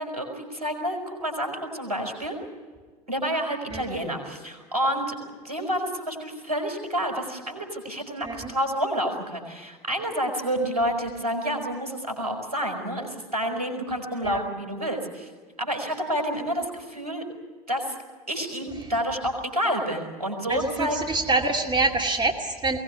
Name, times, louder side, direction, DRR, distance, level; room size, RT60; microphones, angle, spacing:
voice 1, 0.0-2.4 3.1-5.2 5.4-15.3 15.6-17.2 17.7-17.9 18.3-21.0, equal, 80° right, 4 dB, 4.7 m, -29 dB
voice 2, 20.5-22.8, right 3 dB, 25° right, 2 dB, 2.4 m, -25 dB
22.5 x 18.5 x 9.6 m, 1.5 s
figure-of-eight pair, 75°, 20 cm